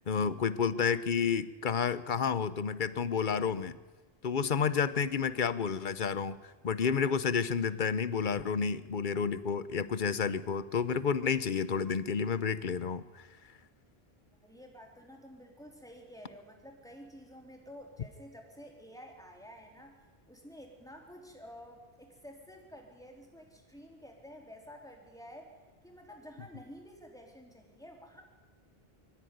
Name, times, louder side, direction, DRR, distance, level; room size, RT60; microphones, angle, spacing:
voice 1, 0.1-3.8 4.2-6.4 6.6-13.3, left 6 dB, 55° left, 15 dB, 1.0 m, -30 dB
voice 2, 14.4-20.0 20.3-25.6 25.8-28.2, equal, 5° left, 1 dB, 3.7 m, -51 dB
23.5 x 14.0 x 9.4 m, 1.3 s
omnidirectional pair, 1.0 m